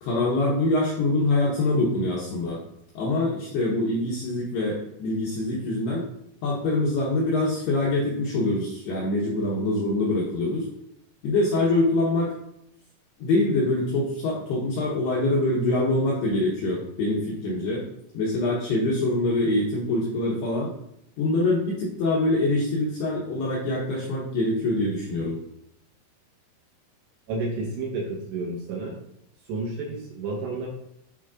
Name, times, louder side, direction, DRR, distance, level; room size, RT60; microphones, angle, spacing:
voice 1, 0.0-2.6 3.0-6.0 6.4-10.7 11.2-12.3 13.2-17.8 18.1-20.7 21.2-25.4, left 2 dB, 80° left, -4 dB, 2.4 m, -24 dB
voice 2, 27.3-28.9 29.5-30.7, right 3 dB, 75° right, -2 dB, 2.6 m, -31 dB
11.0 x 4.7 x 2.4 m, 0.77 s
omnidirectional pair, 5.9 m